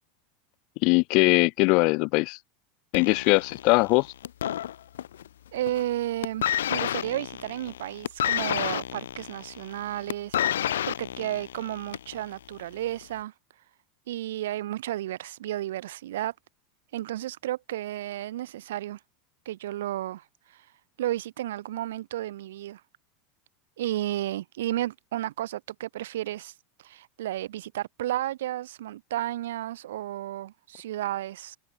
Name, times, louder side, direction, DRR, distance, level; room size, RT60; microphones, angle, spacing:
voice 1, 0.8-2.4 2.9-4.1, left 29 dB, 60° left, 0.4 m, -21 dB
sound 1, 2.9-5.3 5.6-5.9 6.2-12.2 13.0-13.1, left 10 dB, 85° left, 2.1 m, -30 dB
voice 2, 5.5-13.3 14.1-16.3 16.9-19.0 19.4-20.2 20.5-20.6 21.0-22.8 23.8-26.5 26.8-31.6, right 14 dB, 80° right, 1.4 m, -32 dB
hypercardioid pair, 105°, 0 cm